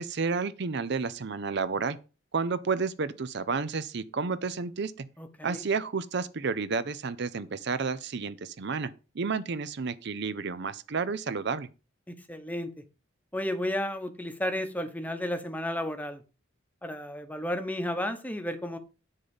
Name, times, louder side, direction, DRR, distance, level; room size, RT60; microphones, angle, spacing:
voice 1, 0.0-2.0 2.3-5.1 5.4-11.7, right 4 dB, 55° right, 0.6 m, -31 dB
voice 2, 5.2-5.6 12.1-12.7 13.3-16.2 16.8-18.8, left 1 dB, 10° left, 1.0 m, -33 dB
10.0 x 3.9 x 7.1 m
head